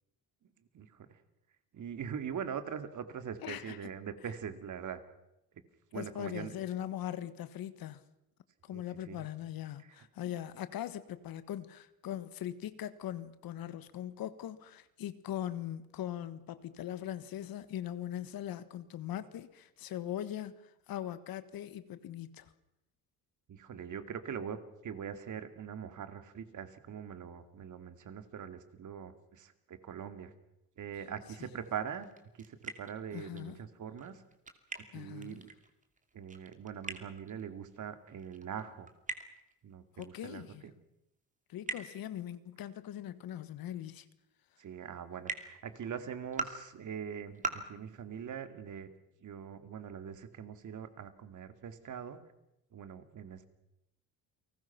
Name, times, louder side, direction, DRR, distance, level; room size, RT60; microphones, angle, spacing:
voice 1, 0.7-1.2 1.7-5.0 5.9-6.5 8.7-9.3 9.8-10.0 23.5-30.3 30.8-32.1 32.4-34.2 34.9-35.5 36.1-38.9 39.6-40.7 44.6-48.9 49.2-52.2 52.7-53.5, right 7 dB, 55° right, 2.5 m, -42 dB
voice 2, 3.4-3.9 5.9-8.0 8.6-20.5 20.9-22.5 33.1-33.6 34.9-35.4 40.0-40.7 41.5-44.0, left 11 dB, 65° left, 1.6 m, -40 dB
sound 1, 31.6-33.5 33.8-37.8 38.0-39.7 40.0-40.1 40.4-40.5 41.7-41.8 43.9-44.0 45.3-45.4 46.2-46.5 47.3-47.5, right 4 dB, 20° right, 2.9 m, -41 dB
30.0 x 19.0 x 6.0 m
cardioid pair, 95°, 37 cm